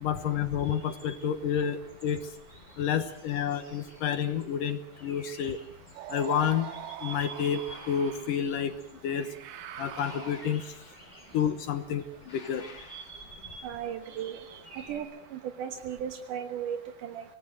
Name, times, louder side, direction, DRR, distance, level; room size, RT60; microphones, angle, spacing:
voice 1, 0.0-2.2 2.8-5.6 6.1-6.7 7.0-7.6 7.9-8.7 9.0-9.3 9.8-10.6 11.3-12.7, left 8 dB, 70° left, 10 dB, 2.1 m, -29 dB
sound 1, 0.6-15.0, right 2 dB, 10° left, 3.2 m, -52 dB
sound 2, 6.0-7.0 7.6-8.6 9.7-11.3 12.2-13.4, left 3 dB, 35° left, 3.8 m, -53 dB
sound 3, 6.0-8.4 9.1-10.7, right 11 dB, 90° right, 3.7 m, -43 dB
voice 2, 13.6-14.4 14.7-15.1 15.6-17.2, right 9 dB, 65° right, 6 dB, 2.1 m, -35 dB
26.0 x 19.0 x 7.9 m, 0.68 s
omnidirectional pair, 5.3 m